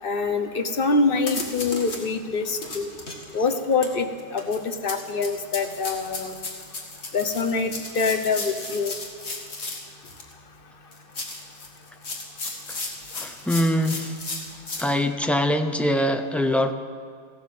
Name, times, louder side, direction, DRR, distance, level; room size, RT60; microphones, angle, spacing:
voice 1, 0.0-2.9 3.3-4.1 4.3-6.3 7.1-8.9, left 4 dB, 50° left, 6 dB, 1.2 m, -25 dB
sound 1, 0.8-0.9 1.2-2.0 2.4-10.3 10.9-14.9, left 3 dB, 70° left, 2.1 m, -35 dB
voice 2, 13.1-14.2 14.8-16.7, left 1 dB, ahead, 6 dB, 0.5 m, -23 dB
15.5 x 12.0 x 7.6 m, 2.1 s
omnidirectional pair, 1.2 m